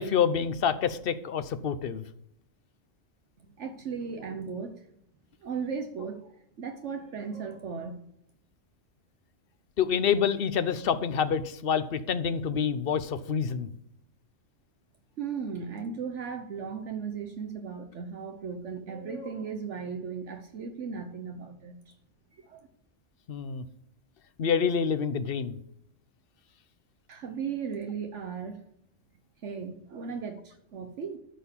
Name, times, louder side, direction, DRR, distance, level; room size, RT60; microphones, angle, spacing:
voice 1, 0.0-2.0 9.8-13.7 23.3-23.6 24.4-25.6, left 7 dB, 50° left, 13 dB, 0.9 m, -27 dB
voice 2, 3.6-4.9 5.4-8.0 15.2-22.0 22.3-22.7 27.1-28.6 29.4-31.2, right 6 dB, 65° right, 5 dB, 1.2 m, -36 dB
12.5 x 4.5 x 7.1 m, 0.73 s
omnidirectional pair, 1.3 m